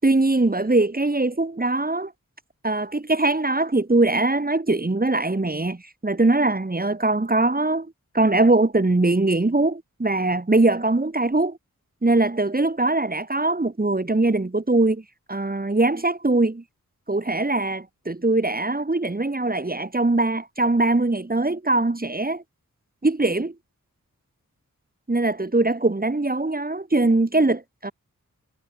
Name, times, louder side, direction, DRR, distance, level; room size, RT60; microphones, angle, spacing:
voice 1, 0.0-2.1 2.6-7.9 8.1-11.6 12.0-15.0 15.3-16.6 17.1-22.4 23.0-23.5 25.1-27.9, right 2 dB, 25° right, 1.8 m, -21 dB
cardioid pair, 45°, 34 cm